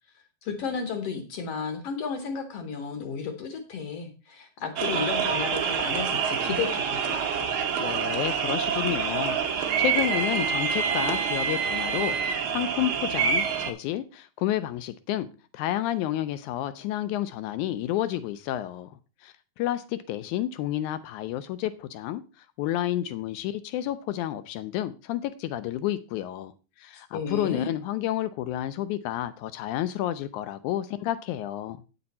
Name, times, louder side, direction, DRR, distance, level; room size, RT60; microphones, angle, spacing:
voice 1, 0.4-7.2 27.1-27.7, left 5 dB, 65° left, 1.6 m, -33 dB
sound 1, 4.8-13.7, right 6 dB, 60° right, 1.4 m, -27 dB
voice 2, 7.8-15.3 15.5-26.5 26.8-31.8, left 13 dB, 80° left, 1.8 m, -30 dB
8.7 x 6.9 x 4.1 m
omnidirectional pair, 3.9 m